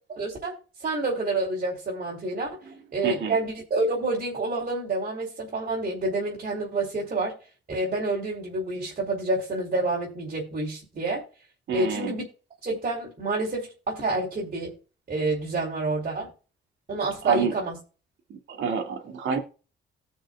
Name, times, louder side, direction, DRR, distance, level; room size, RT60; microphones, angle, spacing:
voice 1, 0.1-2.6 2.9-7.4 7.7-11.2 11.7-12.2 12.6-14.8 15.1-16.3 16.9-17.8, right 2 dB, 45° right, 4.2 m, -28 dB
voice 2, 2.6-3.4 11.7-12.1 17.2-17.5 18.3-19.4, right 6 dB, 70° right, 2.5 m, -28 dB
18.5 x 6.4 x 2.5 m
cardioid pair, 90°, 20 cm